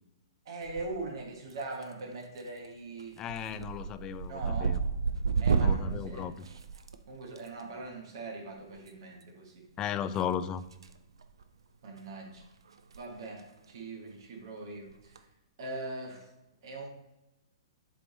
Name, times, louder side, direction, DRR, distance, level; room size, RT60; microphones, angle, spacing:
voice 1, 0.4-3.2 3.5-3.6 4.3-4.8 5.4-6.3 7.1-9.7 11.8-12.4 12.9-15.2 15.6-16.3 16.6-16.9, right 2 dB, 55° right, 1 dB, 1.3 m, -41 dB
sound 1, 0.6-1.2 1.5-2.0 2.4-2.7 3.0-7.4 8.8-8.9 10.1-10.9 11.2-11.4 12.0-12.1 12.3-12.4 12.8-13.0 13.3-13.4 14.9-15.2, right 5 dB, 70° right, 0.5 m, -31 dB
voice 2, 3.2-4.8 5.6-6.5 9.8-10.6, left 9 dB, 25° left, 12 dB, 0.3 m, -35 dB
7.5 x 3.3 x 3.9 m, 0.98 s
figure-of-eight pair, 115°, 3 cm